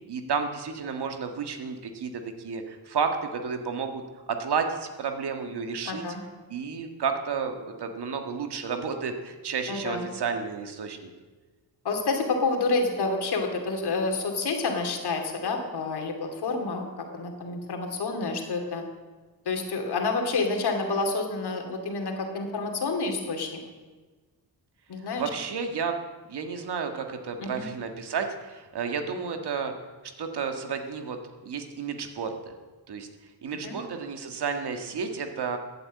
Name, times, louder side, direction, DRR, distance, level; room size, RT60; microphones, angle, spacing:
voice 1, 0.1-4.0 4.3-6.0 6.5-11.1 25.2-26.0 26.3-29.7 30.2-31.2 31.5-32.5 32.9-33.1 33.4-35.6, right 5 dB, 80° right, 5 dB, 1.8 m, -31 dB
voice 2, 5.9-6.2 9.7-10.1 11.8-18.8 19.4-23.6 24.9-25.2 27.4-27.7 33.6-33.7, left 3 dB, 80° left, 4 dB, 2.8 m, -29 dB
14.5 x 9.0 x 8.5 m, 1.3 s
cardioid pair, 85°, 39 cm